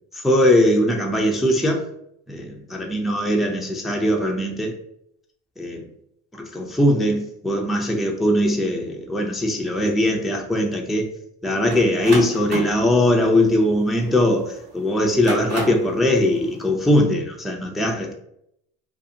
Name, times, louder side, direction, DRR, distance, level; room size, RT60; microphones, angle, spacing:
voice 1, 0.1-1.8 2.3-4.8 5.6-5.9 6.3-11.1 11.4-18.1, left 1 dB, ahead, 0 dB, 0.3 m, -20 dB
sound 1, 11.7-14.4 15.0-15.9, right 1 dB, 65° right, 1.0 m, -31 dB
2.6 x 2.4 x 2.5 m, 0.75 s
supercardioid pair, 115°, 20 cm